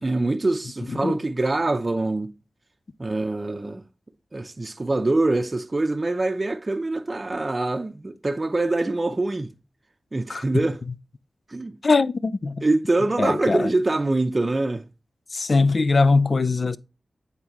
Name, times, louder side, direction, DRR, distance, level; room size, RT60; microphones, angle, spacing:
voice 1, 0.0-2.3 3.0-3.8 4.3-9.5 10.1-10.8 11.5-11.7 12.6-14.9, right 2 dB, 40° right, 0.6 m, -24 dB
voice 2, 11.8-12.7 13.2-13.7 15.3-16.8, left 3 dB, 55° left, 0.4 m, -21 dB
8.9 x 3.7 x 2.9 m
cardioid pair, 40°, 0 cm